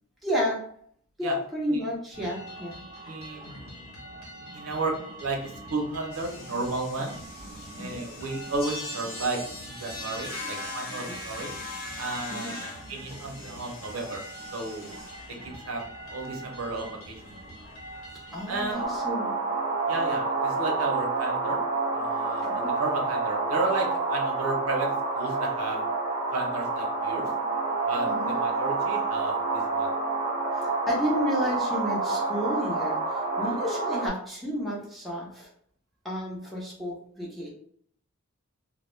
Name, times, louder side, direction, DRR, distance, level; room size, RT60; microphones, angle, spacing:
voice 1, 0.2-0.6 1.2-2.8 7.8-8.0 12.3-12.5 18.3-19.4 22.4-22.8 28.1-28.3 30.5-35.5 36.0-37.5, equal, ahead, -6 dB, 0.6 m, -31 dB
sound 1, 2.1-18.9, right 1 dB, 80° left, 0.9 m, -44 dB
voice 2, 3.1-3.8 4.5-4.9 5.2-7.1 7.8-11.5 12.0-14.2 14.5-15.0 15.4-15.8 16.1-17.2 18.5-18.8 19.9-21.6 21.9-25.8 26.3-27.3 27.9-29.9, right 3 dB, 75° right, 0 dB, 0.6 m, -33 dB
sound 2, 6.1-15.4 15.8-15.9 16.2-16.3 16.6-16.9 17.3-17.4 17.6-17.7 19.0-19.1, left 2 dB, 45° left, 0.7 m, -41 dB
sound 3, 18.7-34.1, right 3 dB, 30° right, 0.7 m, -28 dB
2.2 x 2.0 x 3.1 m, 0.64 s
head